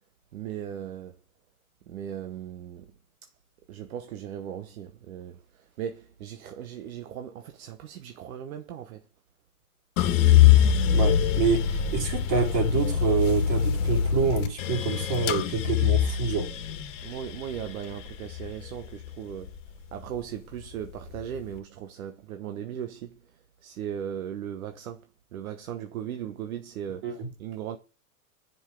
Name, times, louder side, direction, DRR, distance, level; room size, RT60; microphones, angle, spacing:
voice 1, 0.3-1.2 1.9-2.9 3.2-3.3 3.7-9.0 17.0-19.6 19.9-23.2 23.6-27.8, right 9 dB, 70° right, 1.0 m, -38 dB
sound 1, 10.0-20.2 20.6-21.4, left 9 dB, 55° left, 1.6 m, -24 dB
voice 2, 10.9-16.5 27.0-27.3, right 5 dB, 45° right, 3.6 m, -27 dB
7.3 x 5.7 x 3.7 m
hypercardioid pair, 125°, 44 cm